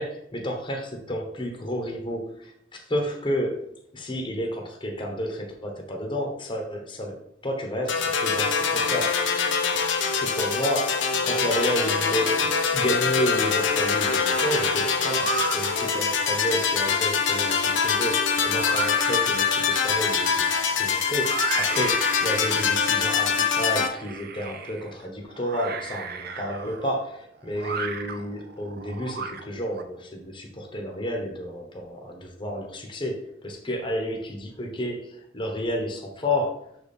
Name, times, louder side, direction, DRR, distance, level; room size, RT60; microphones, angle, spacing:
voice 1, 0.0-3.7 3.9-9.2 10.2-36.7, equal, 25° left, 2 dB, 1.0 m, -31 dB
sound 1, 7.9-23.9, left 6 dB, 75° left, 0.8 m, -24 dB
sound 2, 12.1-12.7 13.1-29.8, right 5 dB, 55° right, 0.6 m, -36 dB
6.2 x 4.2 x 5.2 m, 0.73 s
head